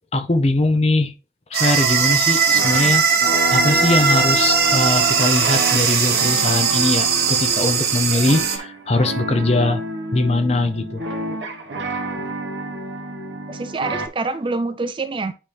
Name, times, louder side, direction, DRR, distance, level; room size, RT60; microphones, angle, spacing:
voice 1, 0.1-1.1 1.5-3.0 3.5-9.8 10.1-11.0, left 2 dB, 35° left, 0.7 m, -21 dB
sound 1, 1.5-8.6, right 6 dB, 55° right, 1.1 m, -19 dB
sound 2, 2.5-14.1, right 1 dB, 75° right, 1.4 m, -29 dB
voice 2, 13.5-15.3, right 3 dB, 25° right, 0.4 m, -26 dB
10.0 x 3.5 x 3.4 m
head